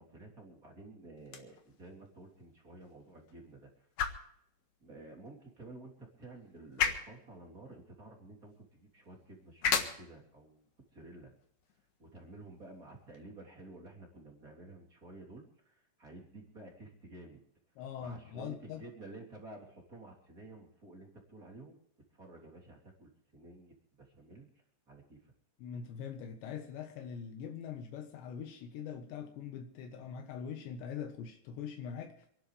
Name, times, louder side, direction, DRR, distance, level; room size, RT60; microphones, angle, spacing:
voice 1, 0.0-3.9 4.8-10.7 10.9-11.3 12.0-17.4 18.0-21.8 22.1-24.5 24.9-25.3, right 2 dB, 20° right, 3.2 m, -52 dB
sound 1, 1.2-13.2, left 7 dB, 60° left, 2.3 m, -40 dB
voice 2, 17.8-18.8 25.6-32.3, left 7 dB, 80° left, 3.5 m, -43 dB
27.5 x 12.0 x 3.4 m
omnidirectional pair, 5.1 m